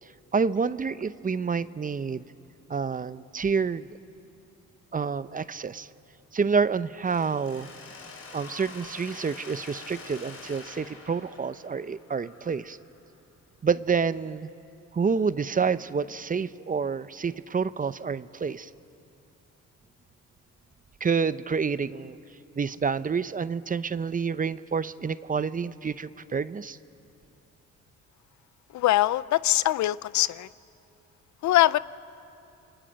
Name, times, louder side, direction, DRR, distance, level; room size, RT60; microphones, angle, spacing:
voice 1, 0.0-2.2 2.7-3.9 4.9-5.9 6.3-7.7 8.3-12.8 13.6-14.5 14.9-18.7 21.0-22.2 22.6-26.8, right 5 dB, 30° right, 15 dB, 0.7 m, -28 dB
Mechanisms, 7.0-12.9, left 4 dB, 50° left, 4.8 m, -46 dB
voice 2, 28.7-30.5 31.4-31.8, left 15 dB, 70° left, 18 dB, 0.6 m, -22 dB
28.0 x 22.5 x 9.0 m, 2.7 s
cardioid pair, 90°, 30 cm